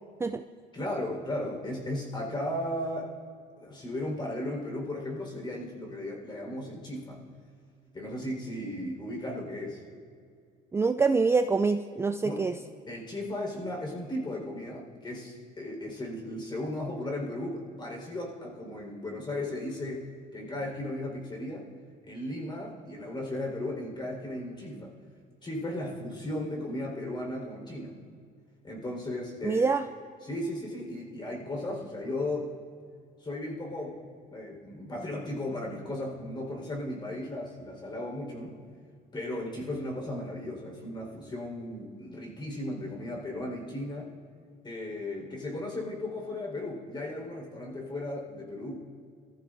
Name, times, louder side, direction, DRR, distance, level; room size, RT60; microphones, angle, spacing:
voice 1, 0.7-3.2 3.6-7.2 7.9-9.8 12.2-12.4 12.9-21.6 22.1-24.9 25.4-27.9 28.6-29.7 30.2-32.5 33.2-34.0 34.3-38.6 39.1-44.1 44.6-48.9, left 1 dB, 25° left, -1 dB, 4.3 m, -36 dB
voice 2, 10.7-12.5 29.4-29.9, right 4 dB, 15° right, 8 dB, 0.4 m, -25 dB
24.5 x 14.5 x 2.6 m, 2.3 s
cardioid pair, 110°, 17 cm